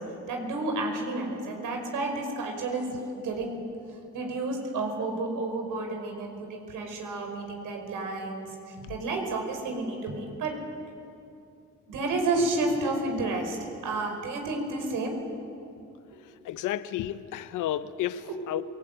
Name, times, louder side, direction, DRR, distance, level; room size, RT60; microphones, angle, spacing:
voice 1, 0.3-3.6 4.1-10.6 11.9-13.6 13.8-15.2 18.3-18.4, right 2 dB, 85° right, 3 dB, 5.3 m, -31 dB
voice 2, 16.4-18.6, left 12 dB, 90° left, 14 dB, 1.0 m, -32 dB
27.0 x 19.5 x 9.1 m, 2.6 s
cardioid pair, 90°, 30 cm